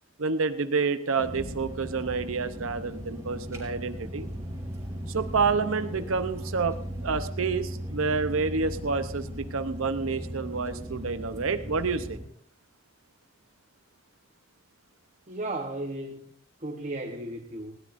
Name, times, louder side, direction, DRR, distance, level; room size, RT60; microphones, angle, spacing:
voice 1, 0.2-4.3 5.1-12.2, right 4 dB, 75° right, 10 dB, 0.8 m, -28 dB
sound 1, 1.2-12.2, equal, 15° right, 4.1 m, -37 dB
voice 2, 15.3-16.3 16.6-17.8, right 1 dB, 35° right, 3 dB, 1.0 m, -35 dB
20.0 x 17.0 x 2.6 m, 0.64 s
head